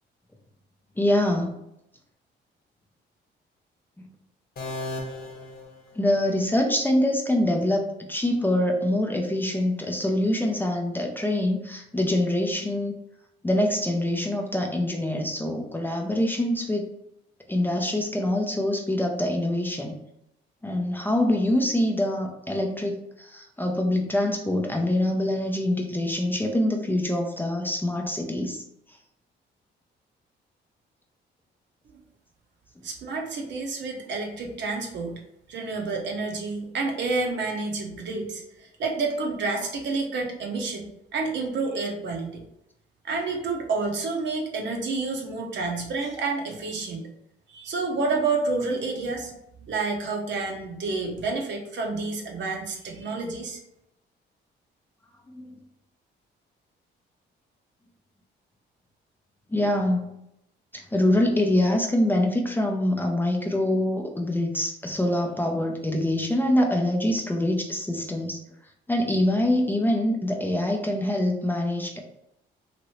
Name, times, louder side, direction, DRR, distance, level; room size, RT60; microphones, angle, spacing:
voice 1, 1.0-1.5 4.0-4.1 5.9-12.9 13.4-16.9 17.5-20.0 20.6-28.6 55.3-55.5 59.5-60.1 60.7-68.4 68.9-72.0, left 1 dB, 10° left, 2 dB, 0.5 m, -25 dB
sound 1, 4.6-6.5, left 2 dB, 50° left, 0.8 m, -36 dB
voice 2, 32.8-35.2 35.5-42.4 43.0-47.1 47.5-49.3 49.6-53.6, right 3 dB, 65° right, 1 dB, 0.8 m, -29 dB
3.0 x 2.6 x 3.0 m, 0.81 s
cardioid pair, 90°, 20 cm